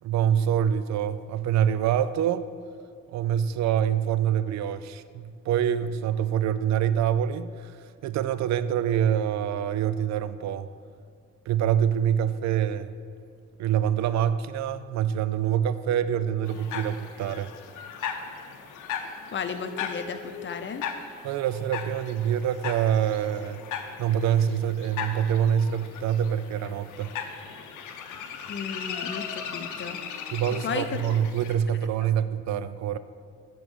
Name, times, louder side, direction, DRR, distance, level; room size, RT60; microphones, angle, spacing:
voice 1, 0.0-2.5 3.1-10.7 11.5-12.9 13.6-17.5 21.2-23.6 24.0-27.1 30.3-33.0, right 9 dB, 65° right, 14 dB, 0.4 m, -25 dB
sound 1, 16.4-31.5, left 7 dB, 85° left, 0.7 m, -38 dB
voice 2, 19.3-20.9 28.4-30.0 30.6-31.0, left 6 dB, 40° left, 8 dB, 0.6 m, -34 dB
6.0 x 5.2 x 6.3 m, 2.3 s
cardioid pair, 90°, 30 cm